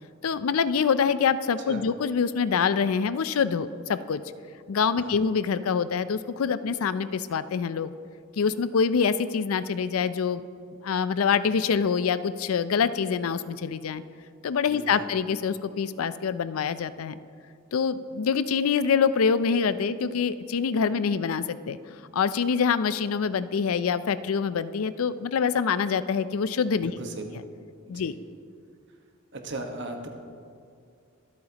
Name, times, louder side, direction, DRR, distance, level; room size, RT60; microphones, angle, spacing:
voice 1, 0.2-4.2 4.7-7.9 8.4-10.4 10.8-14.0 14.4-17.2 17.7-21.8 22.1-26.9 27.9-28.2, left 6 dB, 85° left, 14 dB, 0.4 m, -25 dB
voice 2, 14.7-15.1 26.8-27.3 27.9-28.1 29.3-30.1, right 2 dB, 60° right, 3 dB, 1.3 m, -37 dB
23.5 x 8.3 x 2.9 m, 2.4 s
head